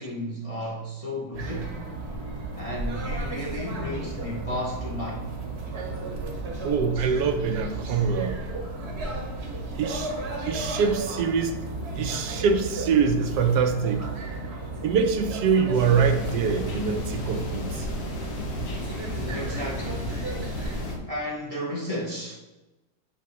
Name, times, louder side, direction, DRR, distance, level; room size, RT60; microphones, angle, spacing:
voice 1, 0.0-1.8 2.6-5.3 19.0-20.2 21.1-22.4, equal, 30° left, 0.7 m, -33 dB
sound 1, 1.3-21.0, right 2 dB, 45° right, 1.1 m, -34 dB
voice 2, 6.6-8.4 9.8-10.1 10.4-11.5 12.0-14.1 14.8-17.9 18.6-18.7, right 6 dB, 80° right, 1.2 m, -24 dB
sound 2, 15.7-21.0, left 3 dB, 75° left, 1.5 m, -34 dB
10.5 x 3.5 x 3.0 m
omnidirectional pair, 1.8 m